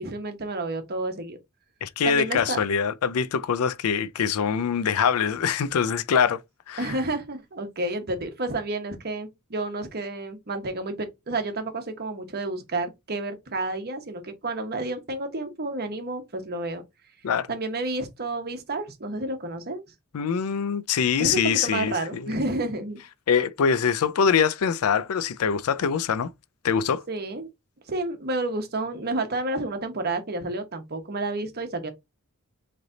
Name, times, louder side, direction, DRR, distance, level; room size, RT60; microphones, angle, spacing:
voice 1, 0.0-1.4 2.0-2.6 6.8-16.8 17.5-19.8 21.2-23.0 27.1-27.5 27.9-31.9, right 2 dB, 45° right, 1.1 m, -30 dB
voice 2, 1.8-6.4 6.7-6.9 17.2-17.5 20.1-22.4 23.3-26.3 26.6-27.0, left 6 dB, 85° left, 0.4 m, -24 dB
4.0 x 3.3 x 3.9 m
head